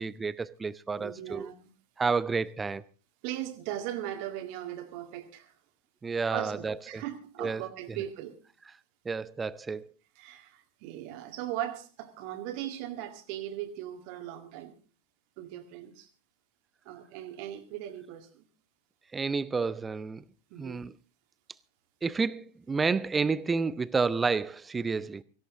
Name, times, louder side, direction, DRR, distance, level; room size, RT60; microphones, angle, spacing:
voice 1, 0.0-1.5 2.0-2.8 6.0-7.0 7.4-7.6 9.0-9.9 19.1-20.2 20.6-20.9 22.0-25.2, right 4 dB, 15° right, 0.6 m, -30 dB
voice 2, 1.0-1.7 3.2-5.5 6.3-8.4 10.2-14.7 15.4-16.1 16.9-18.5 20.5-20.8, right 12 dB, 45° right, 2.0 m, -38 dB
17.5 x 16.5 x 3.7 m
figure-of-eight pair, 90°, 0 cm